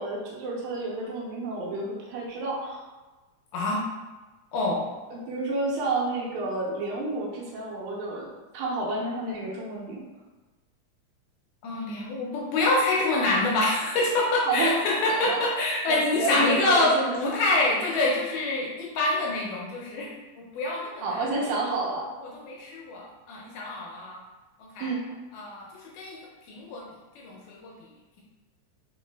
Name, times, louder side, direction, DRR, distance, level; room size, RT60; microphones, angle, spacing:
voice 1, 0.0-2.8 5.1-10.0 14.5-14.8 15.2-15.4 15.9-17.2 21.0-22.0 24.8-25.0, right 2 dB, 80° right, -3 dB, 2.5 m, -30 dB
voice 2, 3.5-3.8 4.5-4.9 11.6-20.1 20.5-21.2 22.2-24.2 24.6-24.9 25.3-26.2 26.5-26.8 27.2-27.9, left 2 dB, 75° left, -3 dB, 2.1 m, -26 dB
4.8 x 4.1 x 2.2 m, 1.2 s
omnidirectional pair, 4.1 m